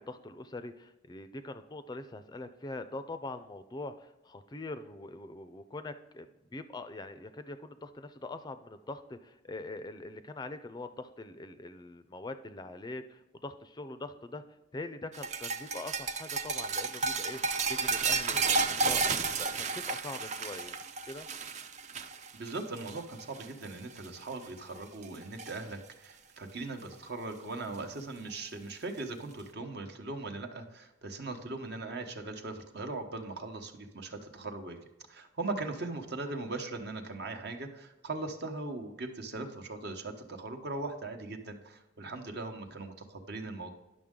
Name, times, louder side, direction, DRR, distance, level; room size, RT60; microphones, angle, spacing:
voice 1, 0.0-14.4 14.7-17.4 17.7-19.0 19.4-20.8 21.1-21.3, left 2 dB, 20° left, 10 dB, 0.4 m, -43 dB
sound 1, 15.1-23.7 24.0-24.3 24.8-25.6 26.9-27.0 28.3-28.4, right 4 dB, 40° right, 0.5 m, -32 dB
voice 2, 22.3-34.8 35.1-43.7, right 2 dB, 60° right, 5 dB, 1.0 m, -39 dB
10.0 x 6.3 x 3.7 m, 1.0 s
head